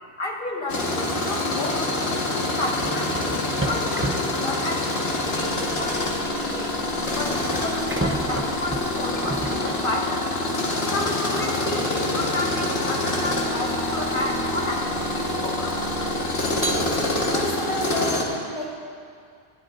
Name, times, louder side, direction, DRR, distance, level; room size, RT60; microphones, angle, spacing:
voice 1, 0.2-2.0 2.5-6.7 7.0-10.2 10.8-16.3, left 1 dB, 55° left, -1 dB, 1.8 m, -32 dB
Tools, 0.7-18.2, left 2 dB, 75° left, 1.7 m, -26 dB
sound 1, 2.8-10.4 11.8-12.0 12.6-16.0 16.5-17.4, right 2 dB, 15° right, 0.5 m, -34 dB
sound 2, 5.0-17.5, right 3 dB, 70° right, 4.3 m, -45 dB
voice 2, 17.3-18.8, left 1 dB, 30° left, -6 dB, 3.7 m, -30 dB
29.0 x 11.0 x 2.6 m, 2.3 s
omnidirectional pair, 1.0 m